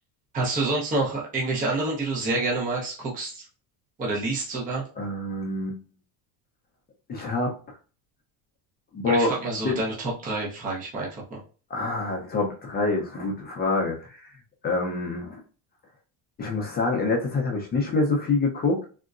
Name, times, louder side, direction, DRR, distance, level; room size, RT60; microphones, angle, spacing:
voice 1, 0.3-3.4 4.0-4.8 9.0-11.4, right 2 dB, 20° right, -3 dB, 0.6 m, -28 dB
voice 2, 5.0-5.8 7.1-7.5 8.9-9.4 9.6-9.8 11.7-14.3 14.6-15.4 16.4-18.8, left 3 dB, 25° left, 0 dB, 0.5 m, -26 dB
3.7 x 2.1 x 2.4 m, 0.37 s
cardioid pair, 155°, 43 cm